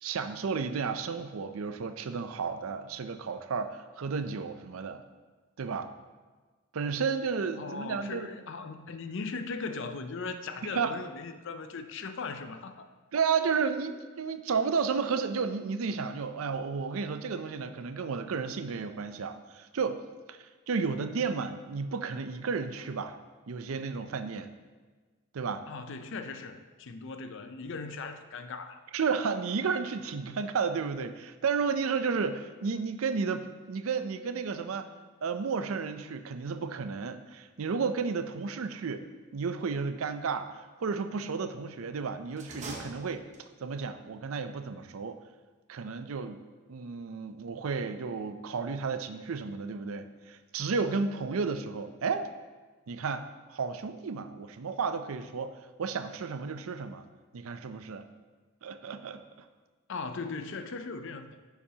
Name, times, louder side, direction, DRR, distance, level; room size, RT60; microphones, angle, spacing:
voice 1, 0.0-5.0 5.6-5.9 6.7-8.3 10.6-10.9 13.1-20.0 20.3-20.4 20.7-23.2 23.5-24.5 25.3-25.7 28.9-34.9 35.2-39.0 39.3-45.2 45.7-46.4 46.7-52.3 52.9-55.5 55.8-57.1 57.3-58.1 58.6-59.2, right 5 dB, 75° right, 10 dB, 0.5 m, -32 dB
voice 2, 7.6-12.9 25.7-28.8 59.9-61.4, left 4 dB, 60° left, 8 dB, 0.5 m, -38 dB
sound 1, 42.3-43.7, right 3 dB, 35° right, 1.0 m, -43 dB
10.0 x 7.1 x 2.8 m, 1.4 s
head